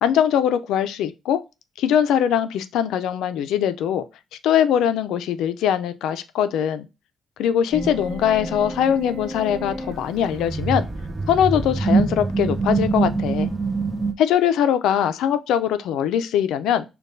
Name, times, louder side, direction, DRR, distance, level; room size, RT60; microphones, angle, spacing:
voice 1, 0.0-1.4 1.8-4.0 4.4-6.9 7.4-10.9 11.3-13.5 14.2-16.8, left 9 dB, 85° left, 0.4 m, -21 dB
sound 1, 7.7-14.1, right 4 dB, 20° right, 0.6 m, -25 dB
6.4 x 2.3 x 2.6 m
cardioid pair, 90°, 0 cm